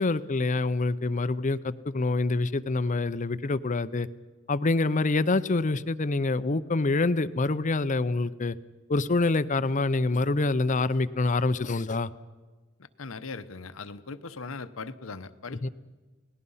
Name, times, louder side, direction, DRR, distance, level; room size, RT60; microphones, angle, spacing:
voice 1, 0.0-4.1 4.5-8.6 8.9-12.1 15.6-15.7, left 3 dB, 40° left, 15 dB, 0.6 m, -26 dB
voice 2, 12.8-15.7, left 4 dB, 75° left, 12 dB, 1.0 m, -39 dB
30.0 x 18.5 x 5.6 m, 1.3 s
head